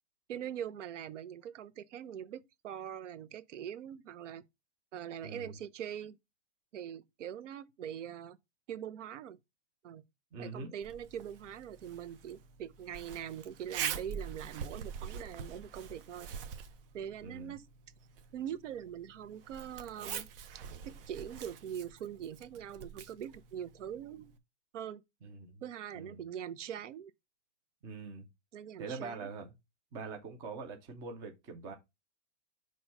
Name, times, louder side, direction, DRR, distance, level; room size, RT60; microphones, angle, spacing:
voice 1, 0.3-4.4 4.9-6.2 6.7-8.4 8.7-9.4 9.8-10.0 10.4-16.3 16.9-17.6 18.3-20.3 20.8-24.3 24.7-25.0 25.6-27.1 28.5-29.3, right 9 dB, 85° right, 0.8 m, -42 dB
voice 2, 5.2-5.6 10.3-10.7 17.2-17.5 25.2-25.6 25.9-26.2 27.8-28.3 28.8-29.5 29.9-31.7, right 4 dB, 10° right, 0.4 m, -43 dB
Zipper (clothing), 10.8-24.4, right 7 dB, 50° right, 0.9 m, -45 dB
5.9 x 3.1 x 5.4 m
supercardioid pair, 165°, 36 cm